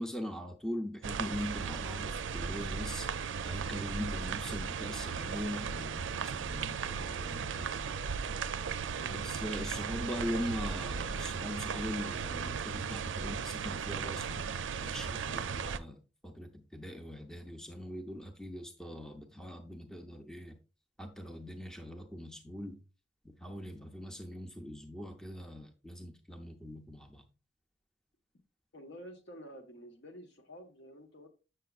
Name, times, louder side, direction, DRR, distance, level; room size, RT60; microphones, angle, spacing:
voice 1, 0.0-3.1 3.4-7.8 9.1-20.6 21.0-22.8 23.2-27.2, equal, 5° left, 0.6 m, -41 dB
sound 1, 1.0-15.8, right 6 dB, 80° right, 0.4 m, -36 dB
voice 2, 28.7-31.3, equal, 65° left, 1.3 m, -50 dB
8.1 x 6.6 x 2.3 m
head